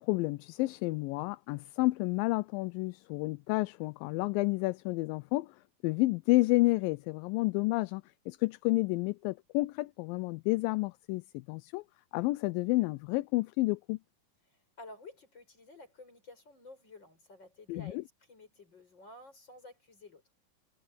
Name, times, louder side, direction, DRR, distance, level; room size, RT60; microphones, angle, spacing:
voice 1, 0.0-5.6 5.8-11.8 12.1-14.0 17.7-18.0, left 22 dB, 85° left, 2.2 m, -30 dB
voice 2, 14.5-18.0 18.3-20.2, left 2 dB, 30° left, 8.3 m, -52 dB
omnidirectional pair, 4.1 m